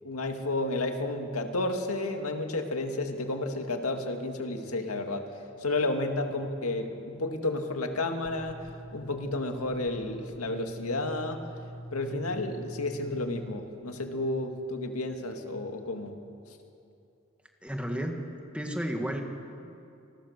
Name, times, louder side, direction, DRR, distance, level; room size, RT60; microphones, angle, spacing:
voice 1, 0.0-5.3 5.6-8.7 8.9-11.4 11.9-16.1, left 2 dB, 90° left, 4 dB, 2.2 m, -31 dB
sound 1, 8.2-13.5, equal, 15° left, 2.0 m, -44 dB
voice 2, 17.6-18.2 18.5-19.2, equal, 5° right, 3 dB, 1.8 m, -32 dB
28.0 x 20.5 x 6.8 m, 2.6 s
head